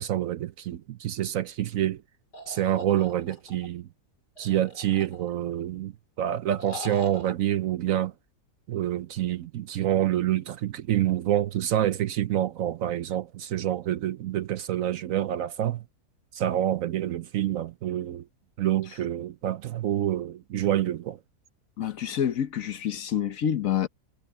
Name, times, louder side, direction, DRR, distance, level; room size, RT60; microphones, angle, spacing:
voice 1, 0.0-2.0 2.5-3.9 4.4-8.1 8.7-15.8 16.3-18.2 18.6-21.2, right 12 dB, 65° right, 0.9 m, -27 dB
sound 1, 2.3-3.7 4.4-5.5 6.6-7.3, left 4 dB, 80° left, 4.6 m, -43 dB
voice 2, 21.8-23.9, left 9 dB, 60° left, 1.3 m, -27 dB
omnidirectional pair, 1.7 m